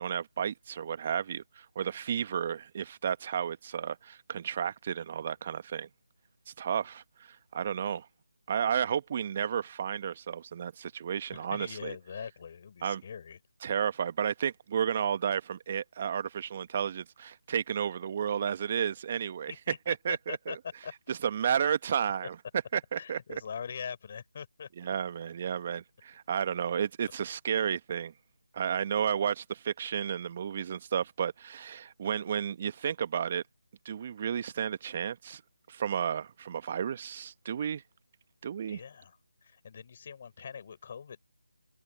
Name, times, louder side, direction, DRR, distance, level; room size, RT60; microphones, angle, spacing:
voice 1, 0.0-5.9 6.5-8.1 8.5-11.9 12.8-13.0 13.6-19.5 19.9-20.6 21.1-22.4 22.7-23.4 24.8-28.1 28.5-33.4 33.8-35.4 35.7-37.8 38.4-38.8, right 8 dB, 30° right, 1.4 m, -32 dB
voice 2, 11.3-13.4 19.5-20.6 20.8-20.9 23.0-24.7 38.7-39.2 39.4-41.2, left 7 dB, 35° left, 5.7 m, -42 dB
figure-of-eight pair, 160°, 0 cm